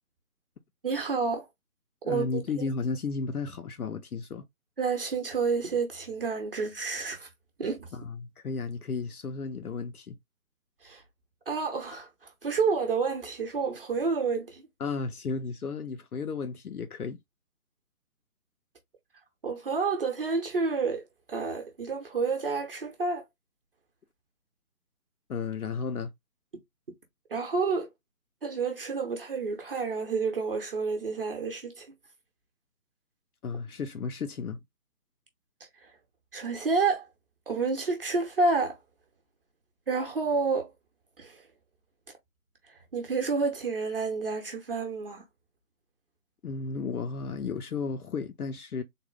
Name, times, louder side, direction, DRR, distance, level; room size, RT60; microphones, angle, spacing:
voice 1, 0.8-1.4 2.1-2.7 4.8-7.3 7.6-7.9 10.8-11.0 11.5-12.1 12.4-14.6 19.4-21.0 21.3-23.2 27.3-27.9 28.4-31.9 36.3-37.1 37.5-38.8 39.9-40.7 41.2-41.4 42.9-45.2, right 4 dB, 40° right, 0.9 m, -29 dB
voice 2, 2.0-4.5 7.9-10.1 14.8-17.2 25.3-26.1 33.4-34.6 46.4-48.8, left 4 dB, 75° left, 0.7 m, -33 dB
3.7 x 2.1 x 3.8 m
figure-of-eight pair, 150°, 45 cm